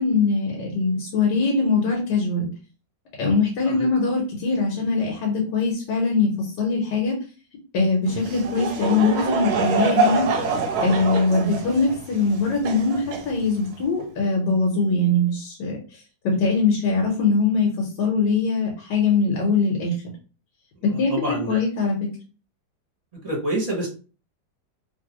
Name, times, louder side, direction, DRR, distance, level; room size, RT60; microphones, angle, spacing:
voice 1, 0.0-2.5 3.2-7.1 7.7-10.3 10.8-20.0 20.8-22.0, left 3 dB, 80° left, 0 dB, 1.4 m, -22 dB
Laughter / Crowd, 8.0-13.8, right 4 dB, 70° right, 1.0 m, -25 dB
voice 2, 20.9-21.6 23.2-23.9, right 1 dB, 25° right, -2 dB, 0.9 m, -27 dB
2.9 x 2.7 x 2.9 m, 0.36 s
omnidirectional pair, 1.9 m